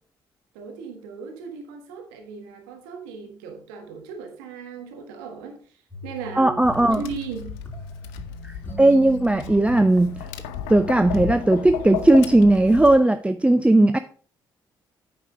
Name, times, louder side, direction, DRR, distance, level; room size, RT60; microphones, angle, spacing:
voice 1, 0.5-5.5 6.0-6.5 6.8-7.5, right 5 dB, 75° right, 1.4 m, -36 dB
sound 1, 5.9-11.1, equal, 15° left, 3.2 m, -39 dB
voice 2, 6.4-7.1 8.4-10.2 10.7-14.0, right 2 dB, 10° right, 0.6 m, -17 dB
Tap, 6.7-12.9, left 10 dB, 70° left, 0.7 m, -34 dB
8.9 x 6.1 x 5.1 m
figure-of-eight pair, 45°, 12 cm